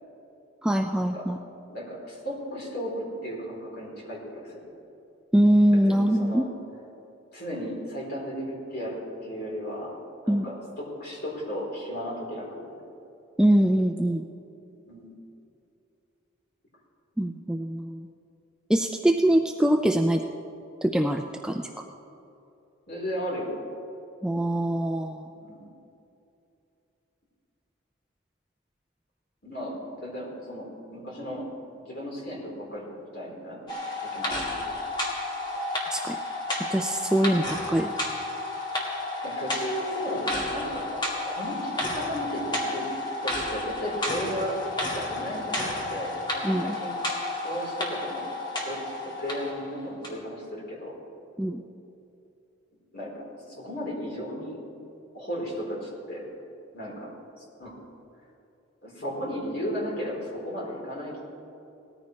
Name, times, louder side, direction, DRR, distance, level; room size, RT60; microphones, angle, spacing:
voice 1, 0.6-1.4 5.3-6.5 10.3-10.5 13.4-14.2 17.2-18.1 18.7-20.2 20.8-21.9 24.2-25.3 35.9-36.2 36.7-37.9 46.4-46.8 51.4-51.6, right 1 dB, 5° right, 3 dB, 0.3 m, -23 dB
voice 2, 1.7-4.6 5.9-6.5 7.3-9.9 10.2-12.6 14.7-15.2 22.9-23.5 25.4-25.6 29.4-31.5 31.8-32.8 33.1-33.7 34.0-34.5 39.2-42.9 43.2-47.0 47.4-48.2 48.7-50.9 52.9-53.1 53.5-54.6 55.1-56.2 56.7-57.1 57.4-57.7 58.8-61.2, equal, 50° left, -4 dB, 3.6 m, -35 dB
sound 1, 33.7-49.6 50.0-50.1, left 2 dB, 20° left, 1.9 m, -31 dB
18.5 x 14.0 x 3.2 m, 2.8 s
head